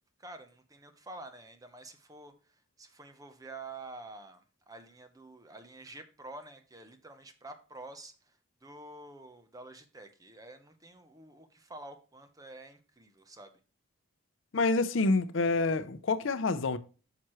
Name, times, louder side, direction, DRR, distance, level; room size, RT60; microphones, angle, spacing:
voice 1, 0.2-13.6, right 2 dB, 15° right, 0.8 m, -49 dB
voice 2, 14.5-16.8, left 3 dB, 65° left, 0.6 m, -27 dB
9.2 x 6.0 x 3.1 m
head